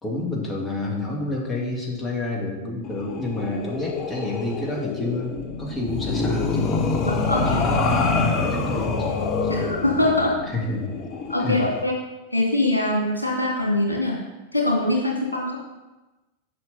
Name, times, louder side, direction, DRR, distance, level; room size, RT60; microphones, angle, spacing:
voice 1, 0.0-6.8 7.3-9.5 10.5-10.9 11.4-11.7, left 2 dB, 15° left, -1 dB, 2.3 m, -29 dB
sound 1, 2.8-11.8, left 3 dB, 35° left, 1.0 m, -26 dB
voice 2, 7.0-7.6 9.5-10.3 11.3-11.9 12.3-14.2 14.5-15.6, left 1 dB, 80° left, -2 dB, 2.8 m, -23 dB
9.9 x 5.8 x 5.7 m, 1.1 s
figure-of-eight pair, 90°, 0 cm